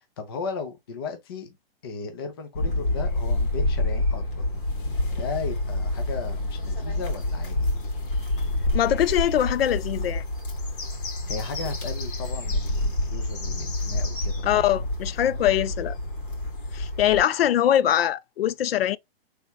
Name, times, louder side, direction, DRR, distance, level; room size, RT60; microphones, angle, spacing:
voice 1, 0.2-1.6 1.8-4.5 5.1-7.7 11.2-14.6, left 4 dB, 25° left, 0.5 m, -36 dB
sound 1, 2.5-17.2, left 2 dB, 55° left, 2.1 m, -28 dB
voice 2, 8.7-10.2 14.4-16.0 16.7-19.0, left 11 dB, 75° left, 0.5 m, -22 dB
4.2 x 3.4 x 2.3 m
hypercardioid pair, 170°, 30 cm